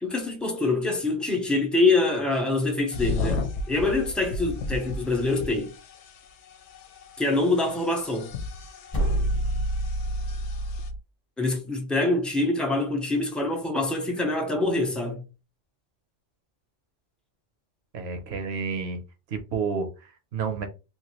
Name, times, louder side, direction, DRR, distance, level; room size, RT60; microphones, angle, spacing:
voice 1, 0.0-5.7 7.2-8.3 11.4-15.2, left 2 dB, ahead, 0.5 m, -25 dB
sound 1, 2.9-10.9, left 3 dB, 70° left, 0.9 m, -35 dB
sound 2, 8.9-11.0, right 1 dB, 30° left, 1.1 m, -27 dB
voice 2, 17.9-19.0 19.3-20.7, right 5 dB, 60° right, 1.0 m, -30 dB
3.0 x 2.6 x 3.0 m
omnidirectional pair, 1.3 m